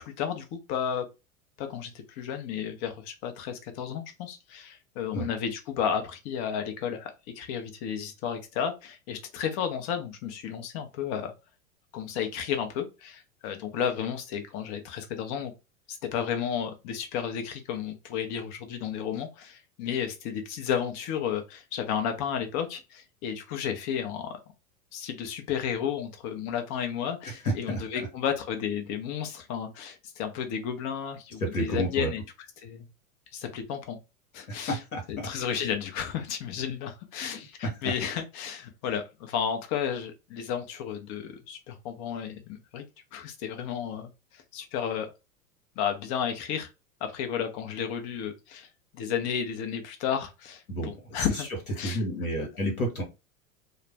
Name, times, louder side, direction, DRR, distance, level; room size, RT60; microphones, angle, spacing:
voice 1, 0.2-1.0 1.6-7.1 7.4-11.3 11.9-15.5 15.9-24.4 24.9-32.2 32.6-32.9 33.3-34.0 34.3-34.8 35.1-42.9 43.1-45.1 45.8-46.7 47.0-48.7 48.9-51.5 51.8-52.0, left 8 dB, 40° left, 0.8 m, -32 dB
voice 2, 27.4-28.1 31.4-32.1 34.5-35.3 37.3-37.4 37.8-37.9 50.7-51.3 51.8-53.0, equal, 90° left, 0.9 m, -31 dB
2.4 x 2.0 x 3.3 m
hypercardioid pair, 95°, 42 cm